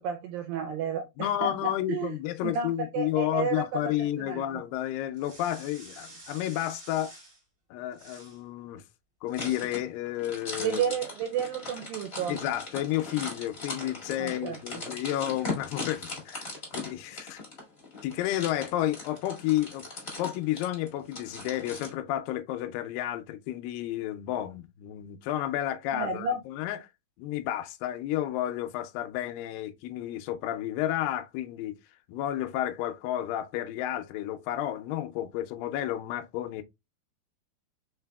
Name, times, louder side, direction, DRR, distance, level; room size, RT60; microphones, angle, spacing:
voice 1, 0.0-2.2 2.4-3.9 4.3-4.6 10.6-12.4 14.2-14.6 25.9-26.4, right 5 dB, 80° right, 2.1 m, -31 dB
voice 2, 1.2-7.2 7.7-8.8 9.2-10.8 12.3-16.5 16.7-17.4 18.0-19.9 20.2-26.8 27.2-31.8 32.1-36.6, left 13 dB, 80° left, 2.1 m, -31 dB
sound 1, 5.1-7.4 7.9-8.4 9.3-9.8, right 2 dB, 25° right, 1.9 m, -49 dB
sound 2, 9.3-21.9, left 3 dB, 35° left, 0.9 m, -39 dB
5.1 x 4.0 x 2.2 m
omnidirectional pair, 4.5 m